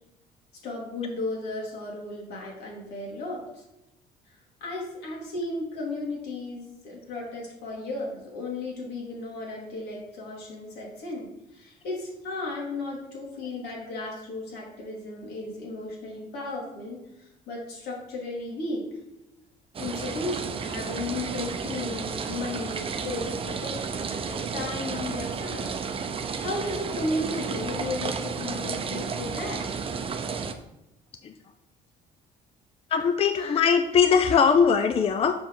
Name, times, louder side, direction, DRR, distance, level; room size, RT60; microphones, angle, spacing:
voice 1, 0.6-3.6 4.3-18.9 19.8-25.8 26.4-29.6, left 2 dB, 75° left, -2 dB, 2.7 m, -35 dB
sound 1, 19.7-30.5, right 5 dB, 35° right, 0.6 m, -32 dB
voice 2, 32.9-35.3, left 6 dB, 35° left, 8 dB, 0.4 m, -20 dB
6.0 x 5.1 x 4.6 m, 0.91 s
cardioid pair, 110°, 17 cm